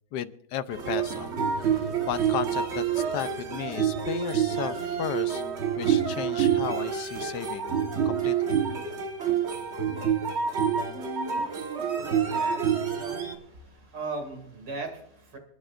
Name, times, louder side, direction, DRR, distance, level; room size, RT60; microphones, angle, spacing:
voice 1, 0.1-1.3 1.8-5.4 5.8-7.7 8.0-8.6, left 10 dB, 75° left, 12 dB, 1.3 m, -34 dB
sound 1, 0.7-13.4, right 8 dB, 40° right, 1.5 m, -27 dB
voice 2, 12.0-15.4, right 3 dB, 80° right, 3 dB, 3.2 m, -39 dB
28.0 x 10.5 x 2.5 m, 0.71 s
omnidirectional pair, 1.9 m